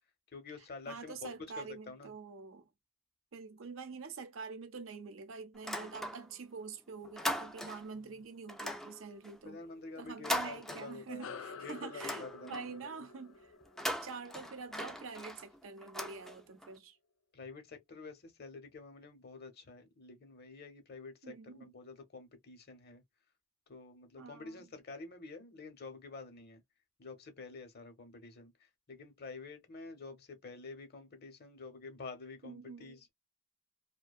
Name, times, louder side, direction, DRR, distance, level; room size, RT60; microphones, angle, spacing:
voice 1, 0.3-2.1 8.1-8.2 9.4-13.0 17.3-23.0 23.7-26.6 27.0-33.1, left 3 dB, 50° left, 0.8 m, -49 dB
voice 2, 0.9-2.7 3.3-9.6 10.0-13.5 14.0-17.0 21.2-21.7 24.2-24.7 32.4-33.0, right 4 dB, 80° right, 0.6 m, -46 dB
sound 1, 5.5-6.5 6.8-8.0 8.5-11.3 11.7-12.8 13.6-16.7, equal, ahead, 0.4 m, -40 dB
sound 2, 11.2-16.0, left 5 dB, 85° left, 0.4 m, -51 dB
2.6 x 2.1 x 2.3 m
head